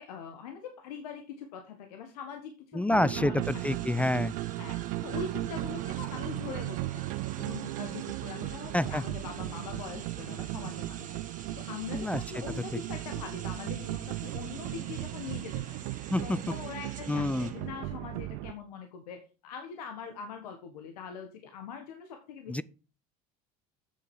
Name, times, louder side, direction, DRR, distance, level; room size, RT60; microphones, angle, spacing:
voice 1, 0.0-3.3 4.6-11.2 11.5-15.8 16.2-22.6, left 6 dB, 85° left, 1.4 m, -42 dB
voice 2, 2.7-4.3 8.7-9.0 11.9-12.2 16.1-16.5 17.1-17.5 22.5-22.6, left 1 dB, 5° left, 0.4 m, -28 dB
club synth by kk demo final, 2.9-18.5, right 18 dB, 70° right, 0.6 m, -36 dB
sound 1, 3.4-17.9, right 7 dB, 40° right, 2.1 m, -49 dB
8.3 x 6.7 x 4.7 m
hypercardioid pair, 75°, 20 cm